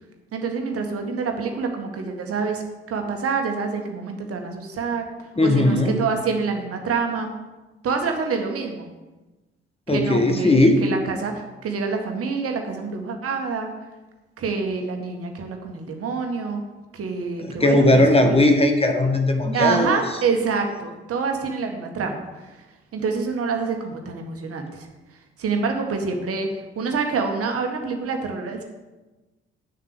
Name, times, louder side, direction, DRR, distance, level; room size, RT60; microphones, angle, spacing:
voice 1, 0.3-5.0 5.4-7.3 7.8-8.9 9.9-13.7 14.4-16.6 16.9-18.4 19.5-22.6 22.9-24.9 25.4-28.6, right 5 dB, 45° right, 4 dB, 1.7 m, -26 dB
voice 2, 5.4-6.0 9.9-10.8 17.4-20.0, left 1 dB, 20° left, 4 dB, 1.6 m, -18 dB
8.4 x 7.5 x 7.7 m, 1.1 s
figure-of-eight pair, 45°, 31 cm